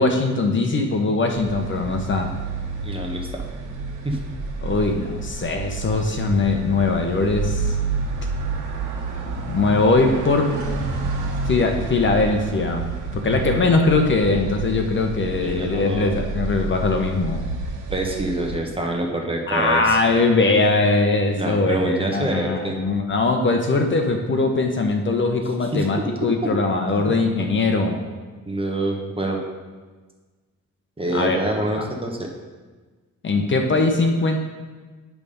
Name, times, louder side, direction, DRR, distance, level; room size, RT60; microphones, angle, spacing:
voice 1, 0.0-2.3 4.6-7.7 9.3-10.6 11.5-12.9 13.1-17.4 19.5-28.0 31.1-31.4 31.8-31.9 33.2-34.4, left 3 dB, 40° left, 4 dB, 0.9 m, -21 dB
sound 1, 1.3-18.6, right 4 dB, 80° right, 1.5 m, -29 dB
voice 2, 2.8-3.4 4.0-4.2 13.3-13.4 15.4-16.2 17.9-20.0 21.4-22.8 25.7-26.5 26.9-27.1 28.5-29.4 31.0-32.2, right 2 dB, 20° right, 1 dB, 1.2 m, -26 dB
10.5 x 3.5 x 5.4 m, 1.4 s
cardioid pair, 90°, 30 cm